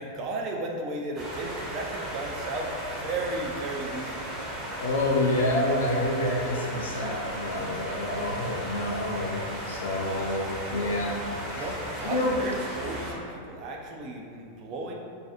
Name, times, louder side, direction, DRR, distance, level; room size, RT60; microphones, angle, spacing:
voice 1, 0.0-4.3 11.5-14.9, right 2 dB, 40° right, 0 dB, 0.3 m, -34 dB
sound 1, 1.2-13.1, equal, 20° right, 0.7 m, -36 dB
voice 2, 4.8-11.2 11.4-12.4, left 1 dB, 70° left, -2 dB, 0.4 m, -28 dB
2.4 x 2.2 x 2.7 m, 2.3 s
figure-of-eight pair, 90°, 0 cm